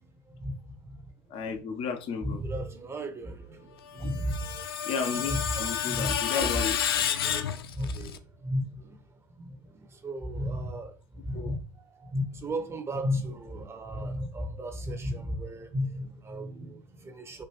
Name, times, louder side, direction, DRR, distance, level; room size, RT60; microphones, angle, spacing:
voice 1, 0.3-1.1 2.2-4.6 5.3-5.4 5.9-6.2 6.9-9.0 9.4-17.4, equal, 20° right, 0.9 m, -35 dB
voice 2, 1.3-2.4 4.0-4.1 4.8-6.8 11.3-11.6, left 6 dB, 50° left, 1.0 m, -33 dB
Screech, 3.9-8.2, left 9 dB, 85° left, 0.4 m, -30 dB
4.5 x 2.6 x 3.2 m
hypercardioid pair, 90°, 12 cm